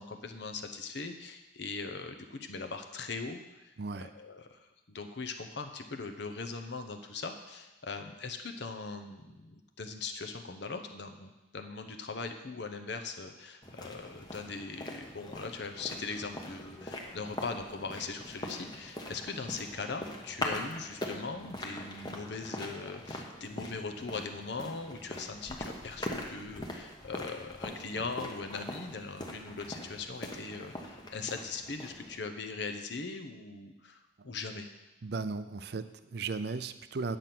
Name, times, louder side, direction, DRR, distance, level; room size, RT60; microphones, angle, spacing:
voice 1, 0.0-3.7 4.0-34.7, left 4 dB, 60° left, 6 dB, 0.8 m, -40 dB
voice 2, 3.8-4.1 35.0-37.2, right 4 dB, 55° right, 12 dB, 0.5 m, -36 dB
sound 1, 13.6-32.2, left 1 dB, 20° left, 1.0 m, -42 dB
9.3 x 6.8 x 5.9 m, 1.1 s
head